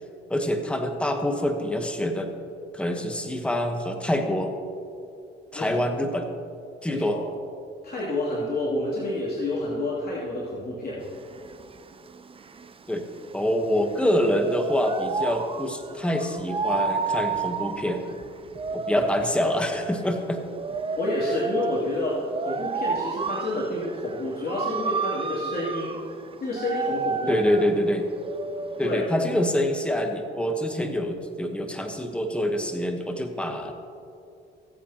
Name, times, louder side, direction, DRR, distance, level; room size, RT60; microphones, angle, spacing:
voice 1, 0.3-2.3 2.7-4.5 5.5-6.3 6.8-7.2 12.9-13.1 13.3-18.0 18.7-20.4 27.3-28.1 28.8-33.7, left 1 dB, 5° left, 4 dB, 1.1 m, -26 dB
voice 2, 6.9-7.2 7.8-11.0 21.0-26.0 26.4-27.4 28.8-29.0, left 1 dB, 50° left, -8 dB, 2.8 m, -29 dB
sound 1, 11.0-29.1, right 5 dB, 25° right, 0.5 m, -32 dB
20.0 x 8.3 x 2.9 m, 2.6 s
cardioid pair, 90°, 20 cm